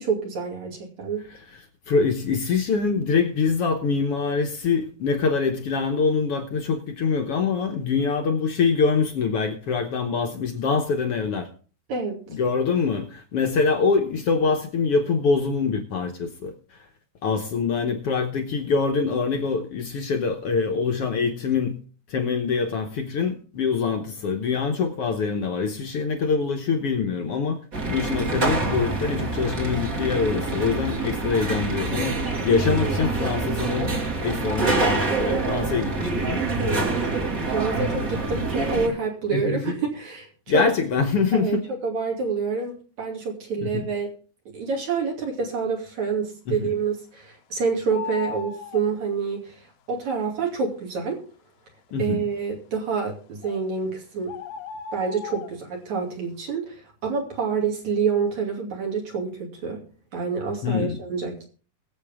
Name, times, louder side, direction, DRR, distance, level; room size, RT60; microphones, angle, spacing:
voice 1, 0.0-1.3 11.9-12.2 36.6-40.7 41.3-41.6 41.8-44.1 44.5-49.5 49.9-51.2 52.0-54.4 54.9-59.8 60.1-61.4, right 5 dB, 60° right, 4.0 m, -27 dB
voice 2, 1.9-11.5 12.3-16.5 17.2-21.8 22.1-27.6 27.8-32.1 32.4-33.9 34.2-36.4 38.8-38.9 39.3-39.8 40.5-41.6 43.6-43.8 46.5-46.7 51.9-52.2 60.6-61.0, left 5 dB, 60° left, 1.6 m, -24 dB
sound 1, 27.7-38.9, right 3 dB, 30° right, 2.1 m, -26 dB
sound 2, 47.9-48.8 53.4-53.6 54.3-55.5, left 7 dB, 80° left, 2.4 m, -35 dB
21.5 x 7.8 x 3.6 m
omnidirectional pair, 3.8 m